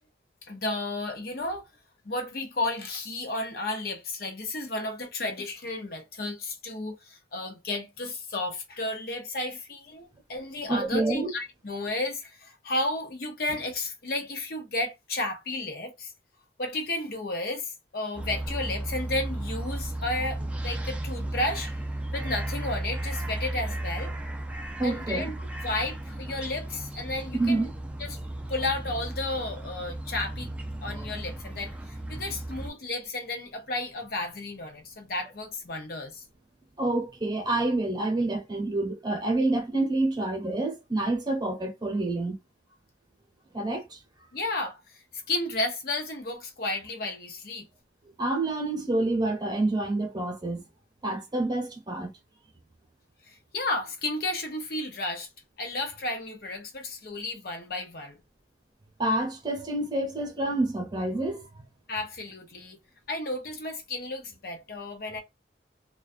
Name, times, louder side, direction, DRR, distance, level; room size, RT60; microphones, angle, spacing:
voice 1, 0.5-1.6 2.0-16.1 16.6-21.7 22.1-24.1 24.8-25.4 25.6-27.7 28.0-28.2 28.5-30.5 30.8-36.2 44.3-45.0 45.3-47.7 53.3-55.3 55.6-58.2 61.9-62.8 63.1-65.2, left 2 dB, 55° left, 0.7 m, -33 dB
voice 2, 10.7-11.3 24.8-25.2 27.3-27.7 36.8-42.3 43.5-44.0 48.2-50.7 51.0-52.1 59.0-61.6, right 2 dB, 25° right, 0.9 m, -28 dB
sound 1, 18.1-32.7, right 1 dB, 5° right, 0.4 m, -35 dB
2.3 x 2.3 x 2.5 m
head